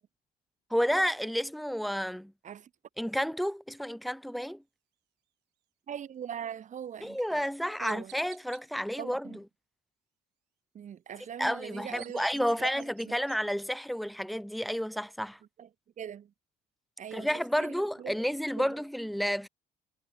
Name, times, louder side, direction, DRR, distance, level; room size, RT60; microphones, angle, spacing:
voice 1, 0.7-2.3 3.0-4.6 7.0-9.4 11.4-15.4 17.1-19.5, equal, ahead, 0.5 m, -31 dB
voice 2, 5.9-7.2 7.8-8.1 9.0-9.4 10.7-13.1 15.6-15.7 16.0-16.3 17.0-17.3 17.6-18.1 18.6-18.7, right 9 dB, 45° right, 2.3 m, -41 dB
Chirp tweet, 7.0-7.1 7.9-8.6 11.6-13.4, right 20 dB, 85° right, 1.0 m, -53 dB
cardioid pair, 110°, 17 cm